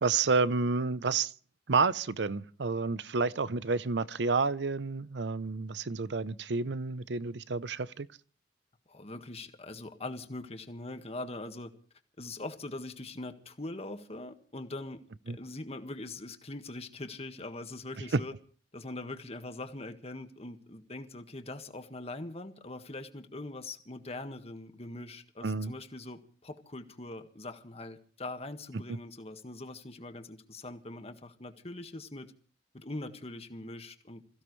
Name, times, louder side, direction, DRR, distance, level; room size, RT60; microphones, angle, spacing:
voice 1, 0.0-1.3 1.7-8.1 15.3-15.4 25.4-25.7 28.9-29.0, right 4 dB, 80° right, 0.7 m, -30 dB
voice 2, 8.9-11.7 12.2-18.3 18.7-32.3 32.7-34.4, left 2 dB, 35° left, 1.7 m, -42 dB
27.0 x 16.0 x 3.2 m
head